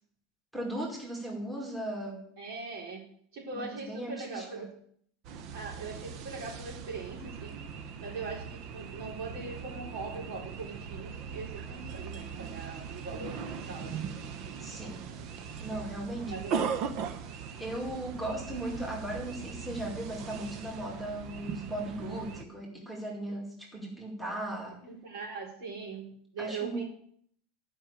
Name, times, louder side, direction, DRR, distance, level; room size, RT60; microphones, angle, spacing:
voice 1, 0.5-2.2 3.5-4.7 14.6-15.0 15.6-16.4 17.6-24.8 26.4-26.8, right 1 dB, 5° right, -3 dB, 2.2 m, -37 dB
voice 2, 2.4-3.1 3.3-4.8 5.5-7.7 8.0-14.2 14.5-14.6 16.3-17.0 24.8-26.8, right 4 dB, 65° right, 0 dB, 4.0 m, -41 dB
sound 1, 5.2-22.4, right 6 dB, 45° right, 0.9 m, -39 dB
11.0 x 5.5 x 8.0 m, 0.63 s
supercardioid pair, 155°, 0 cm